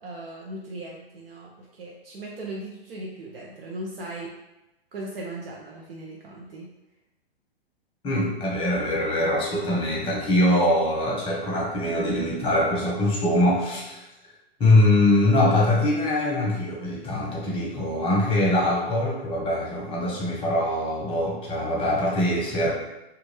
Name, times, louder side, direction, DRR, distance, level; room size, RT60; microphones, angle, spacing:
voice 1, 0.0-4.3 4.9-6.7, right 1 dB, 65° right, -2 dB, 0.6 m, -38 dB
voice 2, 8.0-14.0 14.6-22.7, left 1 dB, 15° left, -4 dB, 0.8 m, -23 dB
2.4 x 2.3 x 3.2 m, 0.95 s
hypercardioid pair, 120°, 31 cm